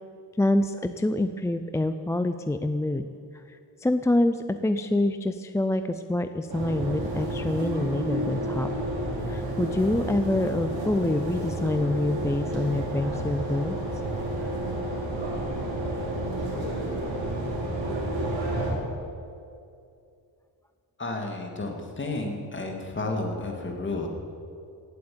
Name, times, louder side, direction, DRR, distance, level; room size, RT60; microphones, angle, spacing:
voice 1, 0.4-3.0 3.5-8.7 9.3-13.8, left 1 dB, 10° left, 9 dB, 0.3 m, -26 dB
sound 1, 6.5-18.7, right 1 dB, 85° right, 4.3 m, -30 dB
voice 2, 21.0-24.1, left 2 dB, 25° left, 2 dB, 2.4 m, -31 dB
17.5 x 8.0 x 8.7 m, 2.5 s
cardioid pair, 130°, 44 cm